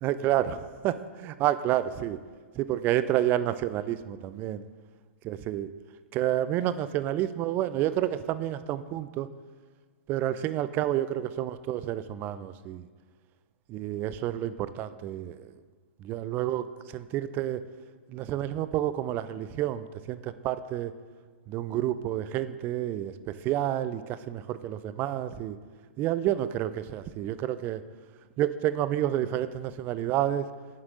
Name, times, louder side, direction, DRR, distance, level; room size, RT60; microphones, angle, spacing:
voice 1, 0.0-2.2 2.6-4.6 5.2-5.7 6.1-9.3 10.1-12.9 13.7-15.5 16.0-16.7 16.9-17.6 18.1-20.9 21.5-25.6 26.0-27.8 28.4-30.5, right 12 dB, 30° right, 14 dB, 0.3 m, -29 dB
10.5 x 7.6 x 2.5 m, 1.5 s
figure-of-eight pair, 115°, 7 cm